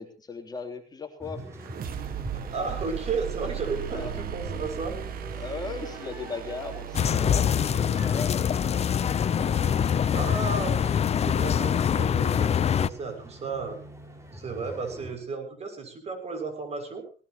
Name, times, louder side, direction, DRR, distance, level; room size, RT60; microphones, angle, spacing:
voice 1, 0.0-1.4 3.9-4.2 5.4-9.5, left 4 dB, 25° left, 4 dB, 3.4 m, -38 dB
sound 1, 1.2-15.2, right 1 dB, 15° right, 5.4 m, -44 dB
sound 2, 1.5-11.3, right 10 dB, 60° right, 1.8 m, -38 dB
voice 2, 2.3-5.0 10.1-13.8 14.3-17.1, right 4 dB, 40° right, 6 dB, 6.8 m, -34 dB
sound 3, 6.9-12.9, left 8 dB, 40° left, 0.7 m, -24 dB
20.0 x 19.5 x 3.1 m, 0.38 s
cardioid pair, 110°, 17 cm